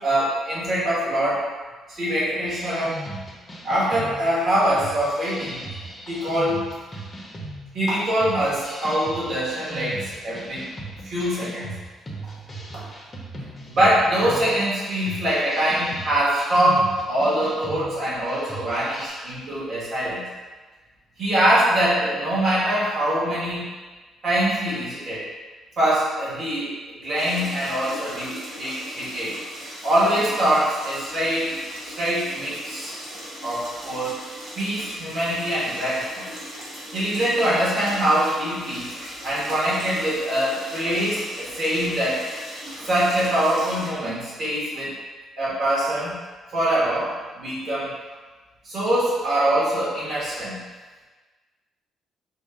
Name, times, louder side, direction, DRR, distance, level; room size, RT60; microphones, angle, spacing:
voice 1, 0.0-1.5 1.9-3.0 3.6-5.6 6.1-6.7 7.7-10.7 11.0-11.8 12.7-12.8 13.7-20.2 21.2-23.7 24.2-25.3 25.8-29.3 29.8-31.6 31.8-33.0 33.4-34.1 34.5-36.3 36.9-38.9 39.2-42.2 42.8-44.9 45.4-46.2 46.5-47.9 48.6-50.6, right 1 dB, 45° right, -8 dB, 1.4 m, -23 dB
sound 1, 2.5-19.1, right 1 dB, 15° left, 0.7 m, -38 dB
sound 2, 27.2-43.9, equal, 80° right, 1.5 m, -39 dB
5.1 x 2.3 x 3.7 m, 1.3 s
cardioid pair, 150°, 0 cm